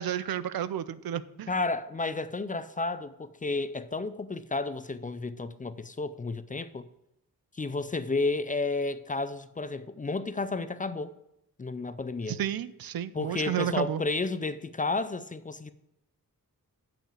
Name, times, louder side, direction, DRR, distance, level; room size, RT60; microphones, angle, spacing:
voice 1, 0.0-1.5 12.3-14.0, right 10 dB, 80° right, 0.5 m, -31 dB
voice 2, 1.5-6.8 7.5-11.1 11.6-12.4 13.1-15.7, left 3 dB, 25° left, 0.4 m, -32 dB
7.1 x 5.5 x 7.4 m
wide cardioid pair, 95°, 35 cm